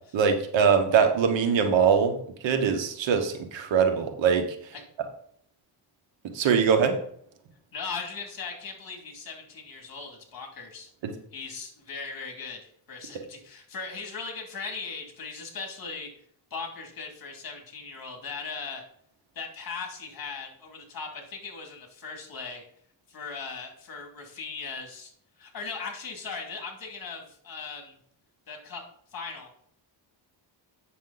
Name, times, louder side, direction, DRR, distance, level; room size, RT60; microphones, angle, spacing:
voice 1, 0.1-2.2 2.4-4.4 6.3-7.0 11.0-11.1 13.1-13.2, right 6 dB, 80° right, 6 dB, 1.4 m, -22 dB
voice 2, 7.7-10.9 11.3-16.1 16.5-18.8 19.3-22.6 23.1-25.1 25.4-28.0 28.5-28.8 29.1-29.5, left 4 dB, 50° left, 2 dB, 2.6 m, -38 dB
8.7 x 6.4 x 4.0 m, 0.63 s
cardioid pair, 110°, 44 cm